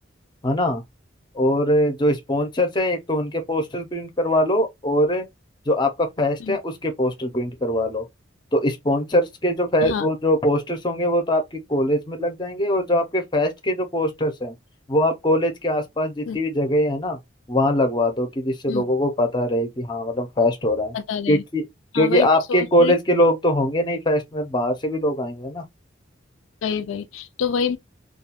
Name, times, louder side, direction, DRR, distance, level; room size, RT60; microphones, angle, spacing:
voice 1, 0.4-0.8 1.3-5.3 5.7-8.1 8.5-14.5 14.9-17.2 17.5-21.0 21.3-21.6 21.9-25.7, left 1 dB, 25° left, 0.5 m, -22 dB
voice 2, 20.9-21.4 21.9-22.9 26.6-27.8, left 6 dB, 85° left, 0.3 m, -27 dB
2.3 x 2.2 x 2.7 m
head